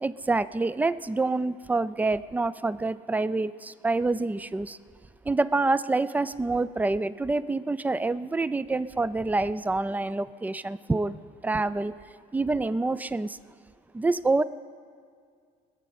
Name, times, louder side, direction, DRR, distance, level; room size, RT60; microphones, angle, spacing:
voice 1, 0.0-4.8 5.3-11.9 12.3-13.4 13.9-14.4, right 3 dB, 10° right, 16 dB, 0.3 m, -27 dB
20.0 x 6.9 x 7.6 m, 2.1 s
cardioid pair, 110°, 17 cm